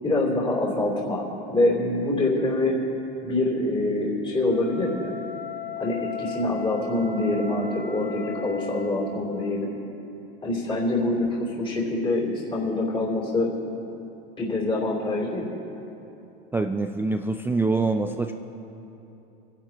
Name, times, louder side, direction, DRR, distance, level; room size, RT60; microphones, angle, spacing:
voice 1, 0.0-2.8 3.2-5.1 5.8-9.7 10.4-13.5 14.4-15.5, left 2 dB, 15° left, -4 dB, 3.2 m, -25 dB
Wind instrument woodwind instrument, 4.4-9.0, left 6 dB, 80° left, 2.2 m, -36 dB
voice 2, 16.5-18.3, right 3 dB, 10° right, 5 dB, 0.3 m, -25 dB
25.0 x 11.5 x 2.9 m, 2.9 s
hypercardioid pair, 105°, 30 cm